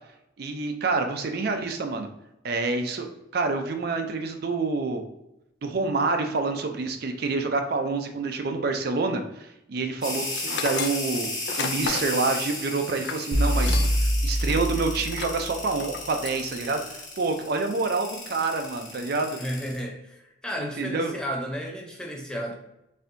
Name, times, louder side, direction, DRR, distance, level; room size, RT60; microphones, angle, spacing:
voice 1, 0.4-2.1 2.4-5.0 5.6-11.3 11.6-19.4 20.6-21.1, right 3 dB, 50° right, 5 dB, 0.4 m, -27 dB
sound 1, 10.0-19.8, left 2 dB, 20° left, 1.3 m, -34 dB
Tools, 10.3-14.1 14.4-14.6 15.1-15.4 15.8-16.4, left 6 dB, 55° left, 0.3 m, -34 dB
sound 2, 13.3-15.4, equal, 75° right, 0.9 m, -24 dB
voice 2, 19.4-22.5, equal, 5° left, 0 dB, 0.5 m, -33 dB
4.2 x 3.4 x 2.6 m, 0.87 s
head